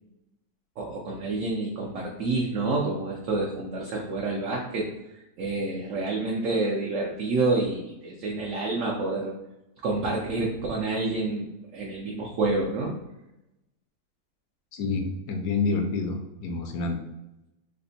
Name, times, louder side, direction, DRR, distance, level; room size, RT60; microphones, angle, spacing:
voice 1, 0.8-4.9 5.4-9.3 9.8-11.5 11.7-12.9, right 3 dB, 65° right, -2 dB, 0.9 m, -28 dB
voice 2, 14.7-17.0, left 3 dB, 75° left, 3 dB, 1.2 m, -28 dB
3.4 x 2.1 x 3.8 m, 0.91 s
omnidirectional pair, 1.7 m